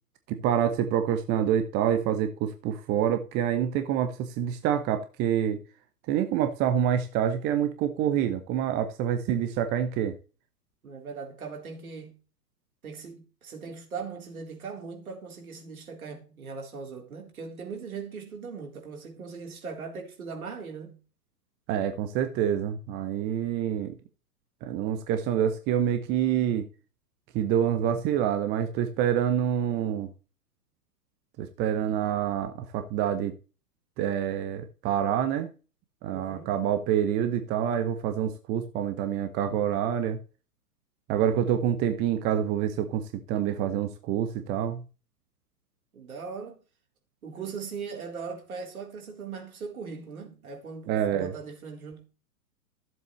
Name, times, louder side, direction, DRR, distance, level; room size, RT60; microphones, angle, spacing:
voice 1, 0.3-5.6 6.1-10.2 21.7-24.0 24.6-26.6 27.3-30.1 31.4-33.3 34.0-35.5 36.0-40.2 41.1-44.8 50.9-51.3, right 9 dB, 20° right, 0.9 m, -27 dB
voice 2, 10.8-12.2 12.8-21.0 36.1-36.6 45.9-46.6 47.2-52.0, right 5 dB, 65° right, 4.0 m, -39 dB
15.0 x 7.7 x 3.2 m
figure-of-eight pair, 110°, 47 cm